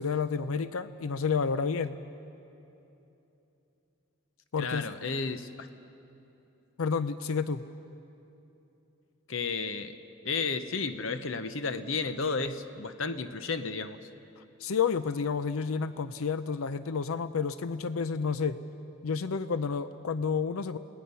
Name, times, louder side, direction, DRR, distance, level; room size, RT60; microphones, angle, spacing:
voice 1, 0.0-2.0 4.5-4.9 6.8-7.6 14.4-18.6 19.0-20.8, left 5 dB, 85° left, 12 dB, 0.5 m, -30 dB
voice 2, 4.6-5.7 9.3-9.9 10.2-14.0, left 4 dB, 70° left, 10 dB, 0.9 m, -32 dB
28.5 x 18.5 x 5.6 m, 2.9 s
head